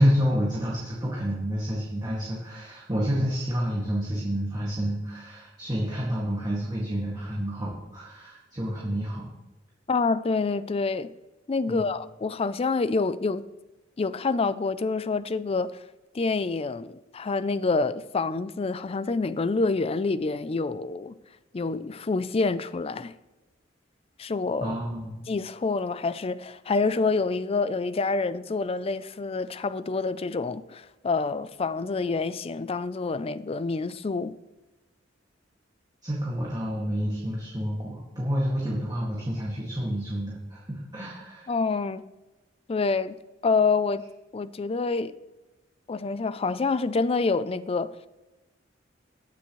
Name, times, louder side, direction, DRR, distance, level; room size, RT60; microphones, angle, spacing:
voice 1, 0.0-9.3 11.7-11.9 24.6-25.3 36.0-41.5, equal, 20° right, 2.1 m, -29 dB
voice 2, 9.9-11.1 11.5-13.4 14.0-15.8 16.1-21.2 21.5-23.1 24.2-24.8 25.3-34.4 41.5-42.1 42.7-43.2 43.4-44.0 44.3-45.2 45.9-47.9, left 4 dB, 30° left, 0.4 m, -27 dB
20.0 x 6.9 x 3.1 m
head